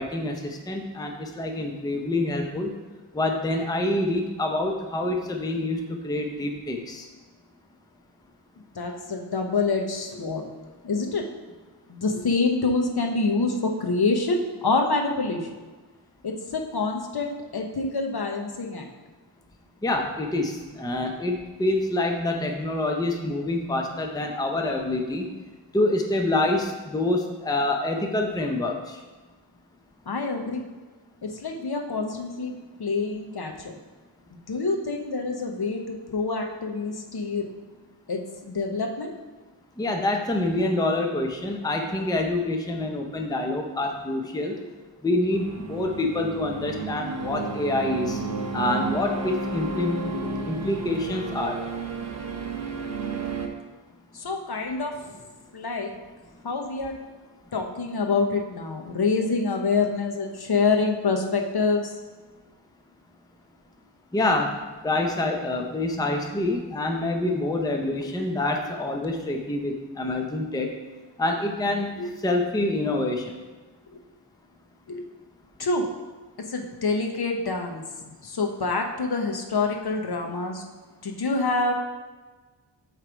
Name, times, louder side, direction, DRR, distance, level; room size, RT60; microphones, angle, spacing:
voice 1, 0.0-2.7 3.1-7.0 19.8-25.3 25.7-29.0 39.8-44.6 45.0-48.2 48.5-50.2 50.4-51.6 64.1-70.8 71.2-71.9 72.2-73.3, left 2 dB, 10° left, 2 dB, 0.6 m, -26 dB
voice 2, 8.7-10.4 10.8-11.3 11.9-15.5 16.2-18.9 30.1-30.6 31.2-32.5 32.8-33.7 34.5-37.5 38.1-39.1 44.6-44.7 54.1-55.9 56.4-56.9 57.5-61.9 72.0-72.1 74.9-75.1 75.6-75.9 76.5-80.6 81.0-81.7, left 3 dB, 60° left, 3 dB, 0.9 m, -26 dB
sound 1, 45.3-53.5, right 3 dB, 40° right, 0.7 m, -32 dB
7.7 x 3.3 x 5.0 m, 1.3 s
wide cardioid pair, 95°, 44 cm